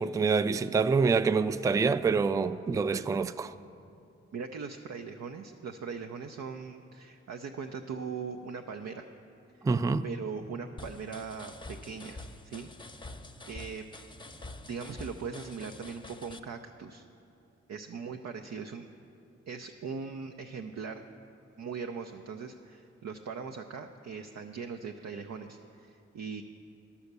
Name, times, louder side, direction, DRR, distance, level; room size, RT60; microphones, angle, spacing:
voice 1, 0.0-3.5 9.6-10.1, right 4 dB, 10° right, 0.3 m, -26 dB
voice 2, 4.3-9.1 9.5-9.7 10.0-13.1 13.5-13.8 14.7-17.0 17.7-18.9 19.5-21.0 21.6-26.4, right 5 dB, 65° right, 0.6 m, -40 dB
sound 1, 10.8-16.4, left 2 dB, 15° left, 0.8 m, -46 dB
11.0 x 7.0 x 6.7 m
supercardioid pair, 45°, 29 cm